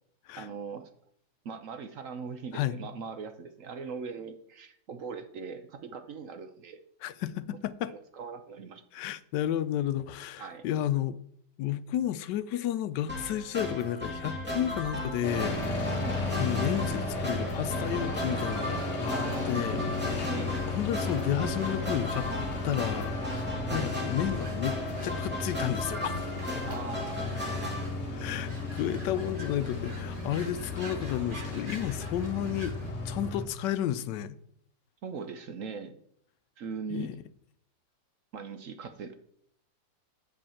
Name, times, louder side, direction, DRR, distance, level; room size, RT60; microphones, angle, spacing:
voice 1, 0.4-0.9 1.4-6.8 7.9-9.0 10.4-10.6 16.0-16.2 19.1-19.6 20.3-20.7 23.7-23.9 26.7-27.7 35.0-36.0 36.6-37.2 38.3-39.1, right 5 dB, 60° right, 1.0 m, -40 dB
voice 2, 7.0-7.9 8.9-11.2 11.6-15.8 16.4-19.8 20.1-20.2 20.7-22.3 22.6-26.1 28.2-32.8 33.0-34.4 36.9-37.2, left 11 dB, 85° left, 1.2 m, -32 dB
sound 1, 13.1-27.8, left 1 dB, 5° right, 2.4 m, -36 dB
sound 2, 15.2-33.4, left 3 dB, 40° left, 1.7 m, -34 dB
sound 3, 18.6-32.9, right 2 dB, 30° right, 1.7 m, -49 dB
8.1 x 5.3 x 7.1 m
omnidirectional pair, 1.8 m